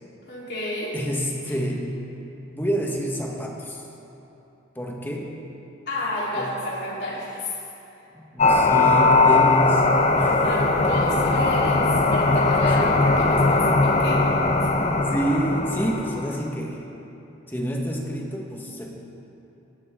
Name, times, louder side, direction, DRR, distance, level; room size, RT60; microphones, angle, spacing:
voice 1, 0.3-0.9 5.9-7.6 10.2-14.3 14.6-14.9, left 1 dB, 55° left, -6 dB, 3.8 m, -31 dB
voice 2, 0.9-2.0 2.5-3.9 4.7-5.4 6.3-6.5 8.1-10.5 12.3-12.7 13.5-13.8 14.6-16.8 17.5-18.9, right 1 dB, 10° left, -1 dB, 1.5 m, -28 dB
sound 1, 8.4-16.4, left 3 dB, 30° left, 0.8 m, -19 dB
20.0 x 16.0 x 3.8 m, 3.0 s
head